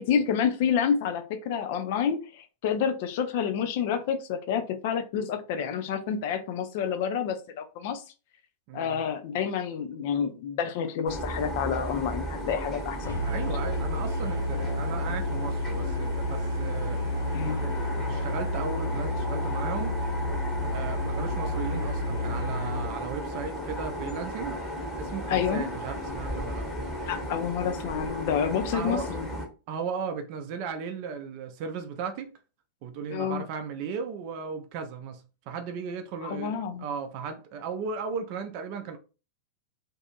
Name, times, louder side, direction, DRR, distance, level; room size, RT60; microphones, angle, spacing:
voice 1, 0.0-8.0 8.7-13.2 17.3-17.7 25.3-25.7 27.1-29.3 33.1-33.4 36.2-36.9, left 7 dB, 50° left, 0.4 m, -29 dB
voice 2, 8.7-9.0 13.2-17.1 17.4-20.0 20.7-24.6 25.0-26.7 28.7-29.4 29.7-32.3 32.8-39.0, right 6 dB, 45° right, 0.4 m, -36 dB
sound 1, 11.0-29.5, equal, 15° left, 1.0 m, -35 dB
Musical instrument, 13.0-23.0, left 1 dB, 90° right, 0.6 m, -31 dB
2.6 x 2.5 x 2.4 m
figure-of-eight pair, 90°, 0 cm